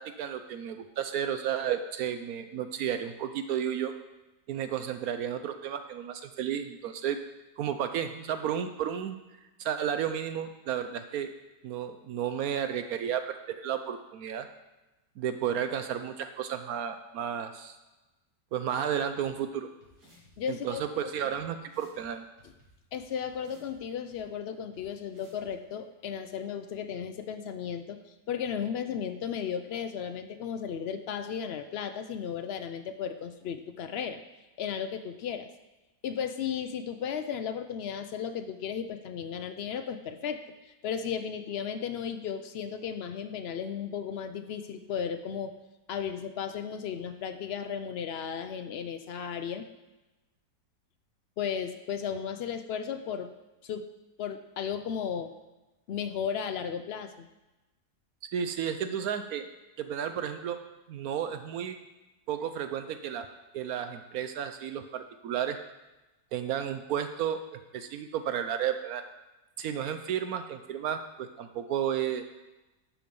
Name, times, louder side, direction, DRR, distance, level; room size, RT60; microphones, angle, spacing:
voice 1, 0.0-3.9 4.5-7.2 7.6-9.2 9.6-11.3 11.6-14.5 15.2-17.8 18.5-19.7 20.5-22.2 58.3-59.5 59.8-60.6 60.9-61.8 62.3-63.3 63.5-65.6 66.3-69.1 69.6-72.2, right 9 dB, 70° right, 8 dB, 1.0 m, -32 dB
sound 1, 19.2-19.3 19.8-20.3 20.7-20.8 21.3-21.4 21.7-22.0 22.4-23.8 24.1-24.2 24.7-24.8 25.1-25.5, equal, 90° right, 3.5 m, -60 dB
voice 2, 20.4-20.8 22.9-28.0 28.3-34.2 34.6-35.5 36.0-40.4 40.8-45.5 45.9-49.6 51.4-53.3 53.6-53.8 54.2-55.3 55.9-57.3, left 7 dB, 85° left, 8 dB, 0.5 m, -35 dB
12.0 x 5.0 x 5.2 m, 1.1 s
omnidirectional pair, 1.7 m